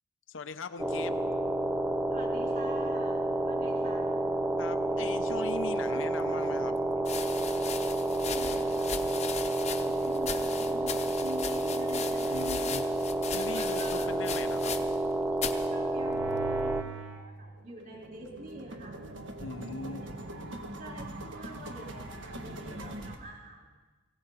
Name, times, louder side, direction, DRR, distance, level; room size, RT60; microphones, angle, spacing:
voice 1, 0.3-1.2 4.6-6.8 12.3-12.9 13.3-14.7 19.4-20.0, left 4 dB, 85° left, 11 dB, 0.8 m, -40 dB
sound 1, 0.8-16.8, right 2 dB, 10° right, 0.5 m, -30 dB
voice 2, 2.1-4.1 8.1-12.8 13.3-14.1 15.6-19.0 19.7-20.4 20.8-23.7, right 1 dB, 45° right, -2 dB, 4.1 m, -46 dB
sound 2, 5.9-6.0 7.0-15.1 15.4-15.7 16.4-16.8, left 7 dB, 35° left, 0.8 m, -38 dB
sound 3, 15.9-17.3 17.7-23.2, right 2 dB, 80° right, 1.4 m, -42 dB
20.5 x 17.0 x 4.2 m, 1.3 s
head